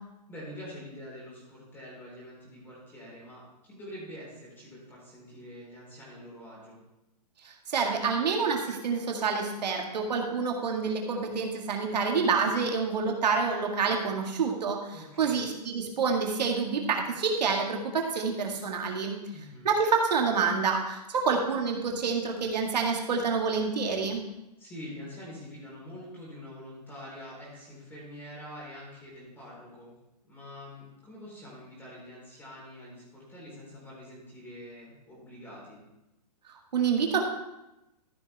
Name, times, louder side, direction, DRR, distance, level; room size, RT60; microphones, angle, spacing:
voice 1, 0.3-6.8 14.9-15.4 19.3-19.7 24.6-29.9 30.2-35.8, left 1 dB, 10° left, -5 dB, 3.9 m, -45 dB
voice 2, 7.4-19.2 19.6-24.2 36.7-37.2, right 5 dB, 80° right, 1 dB, 1.9 m, -28 dB
13.5 x 6.9 x 3.4 m, 0.93 s
hypercardioid pair, 160°, 21 cm